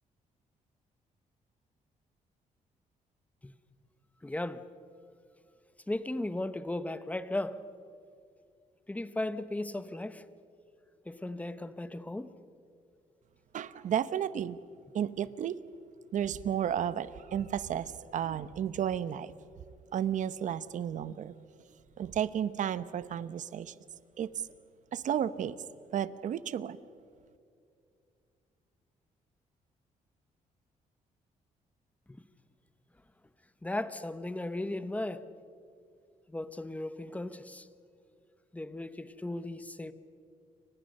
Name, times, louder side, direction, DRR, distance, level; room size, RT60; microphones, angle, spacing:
voice 1, 4.2-4.6 5.9-7.6 8.9-10.2 11.1-12.3 32.1-32.2 33.6-35.2 36.3-37.7 38.5-39.9, left 1 dB, 10° left, 1.0 m, -36 dB
voice 2, 13.5-14.6 14.9-15.6 16.1-19.3 19.9-21.3 22.0-23.7 24.2-24.3 24.9-25.5 25.9-26.8, right 9 dB, 60° right, 0.9 m, -32 dB
29.5 x 25.0 x 6.6 m
cardioid pair, 120°, 14 cm